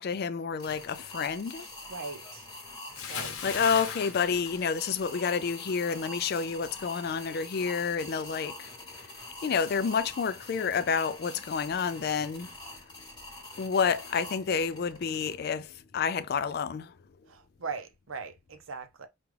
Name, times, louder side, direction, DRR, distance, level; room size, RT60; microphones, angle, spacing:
voice 1, 0.0-1.7 3.4-9.1 9.4-12.5 13.6-16.9, left 6 dB, 45° left, 0.3 m, -29 dB
sound 1, 0.6-15.3, left 2 dB, 20° left, 1.1 m, -45 dB
voice 2, 1.9-2.5 3.1-3.4 17.3-19.1, right 5 dB, 70° right, 0.7 m, -40 dB
Bathtub (filling or washing) / Splash splatter, 2.9-5.4 5.7-6.0, left 6 dB, 85° left, 0.8 m, -37 dB
5.0 x 2.4 x 3.2 m
head